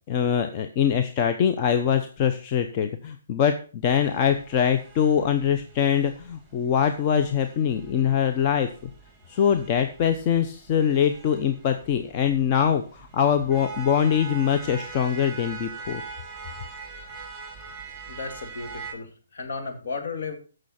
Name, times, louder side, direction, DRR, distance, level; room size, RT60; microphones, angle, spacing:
voice 1, 0.1-8.7 9.3-16.0, left 8 dB, 35° left, 6 dB, 0.8 m, -23 dB
sound 1, 3.9-18.9, right 5 dB, 5° right, 3.4 m, -43 dB
voice 2, 18.1-20.4, left 4 dB, 65° left, 4 dB, 2.6 m, -34 dB
15.5 x 6.5 x 4.4 m, 0.38 s
hypercardioid pair, 145°, 0 cm